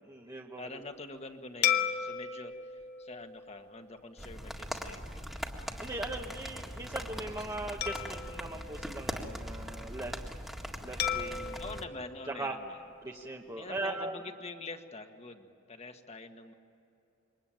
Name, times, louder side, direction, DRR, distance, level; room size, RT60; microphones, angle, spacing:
voice 1, 0.1-0.8 5.8-10.1 10.8-11.6 12.3-12.5 13.0-14.2, right 2 dB, 20° right, -1 dB, 1.1 m, -39 dB
voice 2, 0.6-5.4 6.5-7.3 11.6-12.8 13.6-16.5, left 3 dB, 30° left, 6 dB, 1.6 m, -46 dB
sound 1, 1.6-4.3 4.9-5.1 7.8-9.6 11.0-13.3, left 8 dB, 50° left, 1.3 m, -36 dB
sound 2, 4.2-11.8, equal, ahead, 1.8 m, -41 dB
28.0 x 23.5 x 9.0 m, 2.7 s
head